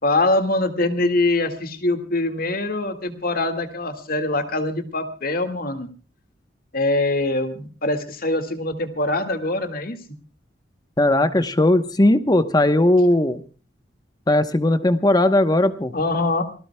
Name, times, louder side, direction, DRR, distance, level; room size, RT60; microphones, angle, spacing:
voice 1, 0.0-5.9 6.7-10.0 15.9-16.4, left 2 dB, 55° left, 8 dB, 2.0 m, -23 dB
voice 2, 11.0-13.4 14.3-15.9, left 1 dB, 20° left, 10 dB, 1.0 m, -18 dB
27.0 x 18.5 x 2.3 m, 0.38 s
head